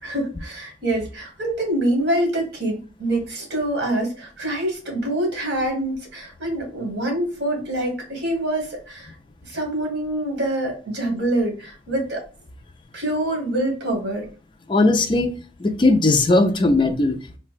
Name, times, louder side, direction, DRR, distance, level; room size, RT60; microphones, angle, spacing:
voice 1, 0.0-9.1 9.5-12.2 12.9-14.2, right 1 dB, 80° right, 1.3 m, -25 dB
voice 2, 14.7-17.4, left 2 dB, 25° left, 0.4 m, -19 dB
3.7 x 2.2 x 2.4 m
head